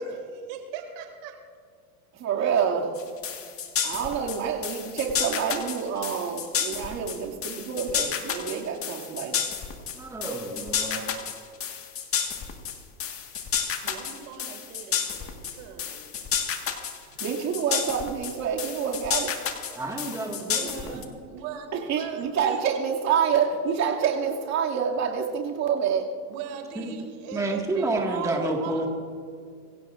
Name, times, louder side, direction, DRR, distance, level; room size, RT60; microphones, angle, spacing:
voice 1, 0.0-1.4 13.8-16.0 17.1-17.2 20.3-21.7 22.0-22.6 23.5-23.8 26.3-28.9, right 7 dB, 55° right, 4 dB, 2.6 m, -39 dB
voice 2, 2.2-2.9 3.8-9.5 17.2-19.6 21.7-26.1, right 7 dB, 35° right, 0 dB, 2.4 m, -27 dB
sound 1, 3.0-21.1, left 8 dB, 30° left, 1.7 m, -31 dB
voice 3, 9.9-11.1 19.8-21.0 26.8-26.9 27.3-28.9, right 2 dB, 5° right, 0 dB, 1.9 m, -29 dB
24.0 x 16.0 x 2.5 m, 2.2 s
hypercardioid pair, 105°, 45 cm